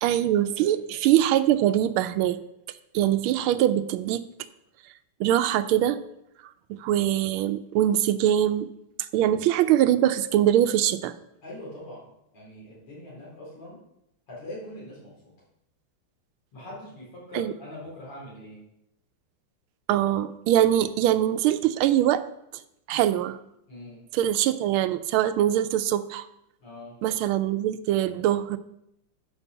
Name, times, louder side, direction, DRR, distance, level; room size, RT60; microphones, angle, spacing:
voice 1, 0.0-2.4 2.9-4.2 5.2-6.0 6.8-8.7 9.1-11.1 17.3-17.5 19.9-22.2 22.9-23.4 24.1-26.2 27.0-28.6, right 12 dB, 80° right, 12 dB, 1.5 m, -23 dB
voice 2, 0.6-1.0 11.4-12.1 12.3-13.8 14.3-15.3 16.5-18.6 23.7-24.0 26.6-26.9, left 1 dB, 85° left, -6 dB, 5.0 m, -42 dB
9.8 x 5.3 x 6.8 m, 0.80 s
omnidirectional pair, 2.4 m